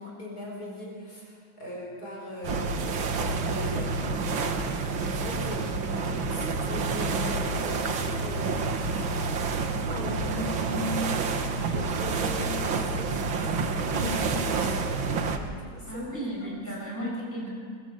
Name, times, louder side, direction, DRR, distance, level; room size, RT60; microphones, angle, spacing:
voice 1, 0.0-4.1 5.0-9.2 9.8-11.1 11.6-14.8 15.7-16.0 16.4-16.5 17.0-17.1, left 1 dB, 50° left, -2 dB, 5.5 m, -39 dB
sound 1, 2.4-15.4, right 4 dB, 85° right, 2.2 m, -28 dB
voice 2, 15.9-17.5, equal, 10° right, -4 dB, 7.5 m, -35 dB
23.5 x 21.0 x 7.9 m, 2.1 s
omnidirectional pair, 2.1 m